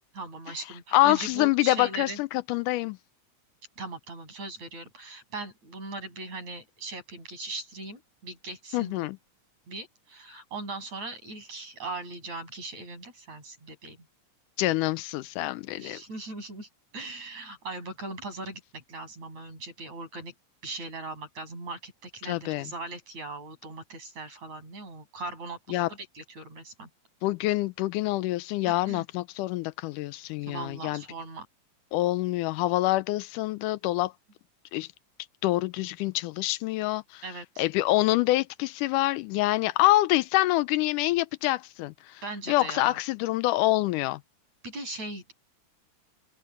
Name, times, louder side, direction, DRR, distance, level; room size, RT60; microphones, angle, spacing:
voice 1, 0.1-2.2 3.8-9.1 9.7-14.0 15.8-20.3 20.6-26.9 28.6-29.0 30.5-31.5 37.2-37.6 42.2-43.0 44.6-45.3, right 2 dB, 60° right, 9.2 m, -39 dB
voice 2, 0.9-3.0 8.7-9.2 14.6-16.0 22.2-22.7 25.7-25.9 27.2-31.0 31.9-34.1 34.7-34.9 35.4-37.2 37.6-42.2 42.5-44.2, left 17 dB, 85° left, 2.1 m, -26 dB
omnidirectional pair, 3.6 m